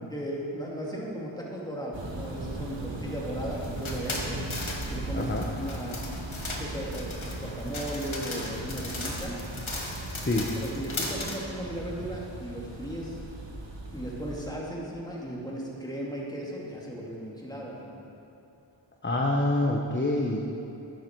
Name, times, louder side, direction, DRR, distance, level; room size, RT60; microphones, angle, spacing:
voice 1, 0.1-4.4 4.9-6.0 6.6-9.4 10.5-13.2 13.9-18.0, right 1 dB, 10° left, -4 dB, 2.6 m, -36 dB
sound 1, 1.9-14.5, right 1 dB, 65° right, 1.5 m, -38 dB
sound 2, 3.5-11.4, left 2 dB, 85° left, 1.5 m, -37 dB
voice 2, 5.1-5.5 10.2-10.5 19.0-20.4, left 2 dB, 25° left, 0 dB, 0.9 m, -26 dB
11.5 x 10.5 x 4.6 m, 2.8 s
wide cardioid pair, 50°, 47 cm